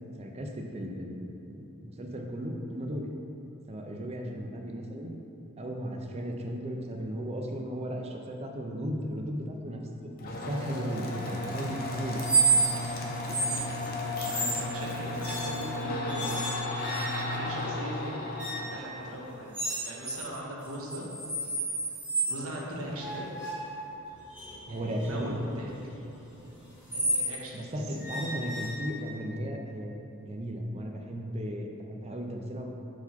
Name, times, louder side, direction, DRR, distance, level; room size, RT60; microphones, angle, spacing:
voice 1, 0.2-1.2 1.5-3.1 3.7-5.1 5.6-12.4 24.7-25.3 27.5-29.9 30.2-32.7, equal, 30° right, 2 dB, 0.5 m, -36 dB
sound 1, 10.2-19.8, left 2 dB, 45° left, 0.7 m, -34 dB
sound 2, 12.2-12.9 13.2-13.6 14.2-14.7 15.2-15.7 16.1-17.4 18.4-18.7 19.5-20.3 20.6-22.4 23.0-27.4 28.0-29.2, right 3 dB, 5° right, 1.5 m, -31 dB
voice 2, 13.9-21.1 22.3-23.6 24.7-25.7 26.9-27.8, equal, 85° right, -3 dB, 1.0 m, -40 dB
4.8 x 4.0 x 5.7 m, 2.8 s
head